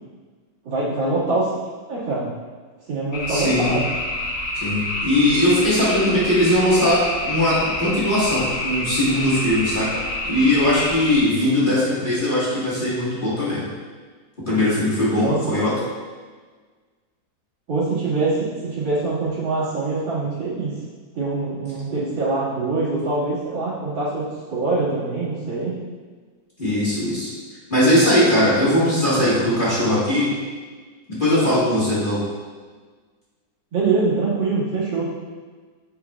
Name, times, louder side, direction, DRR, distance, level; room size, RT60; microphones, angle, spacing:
voice 1, 0.6-1.5 1.9-2.3 2.9-3.9 15.2-15.4 17.7-20.7 21.1-25.8 33.7-35.1, right 3 dB, 80° right, -9 dB, 2.7 m, -24 dB
sound 1, 3.1-11.2, left 1 dB, 50° left, 1.1 m, -27 dB
voice 2, 3.3-3.8 4.6-13.6 14.5-15.7 26.6-27.3 27.7-30.3 31.1-32.2, left 1 dB, 25° left, -9 dB, 1.7 m, -20 dB
8.3 x 5.4 x 2.3 m, 1.5 s
omnidirectional pair, 2.1 m